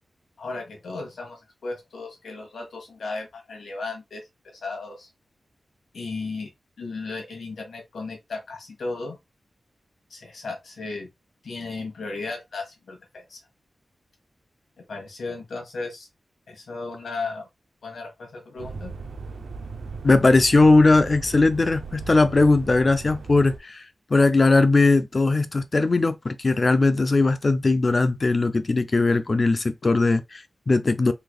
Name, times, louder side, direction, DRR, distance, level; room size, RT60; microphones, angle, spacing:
voice 1, 0.4-5.1 5.9-6.5 6.8-9.2 10.1-11.1 11.4-13.4 14.8-16.1 16.5-17.5 17.8-18.9, left 3 dB, 90° left, 1.4 m, -35 dB
sound 1, 18.6-23.6, right 4 dB, 90° right, 0.5 m, -37 dB
voice 2, 20.0-23.8 24.1-31.1, left 3 dB, 35° left, 0.4 m, -19 dB
3.9 x 3.3 x 2.2 m
wide cardioid pair, 125°, 0 cm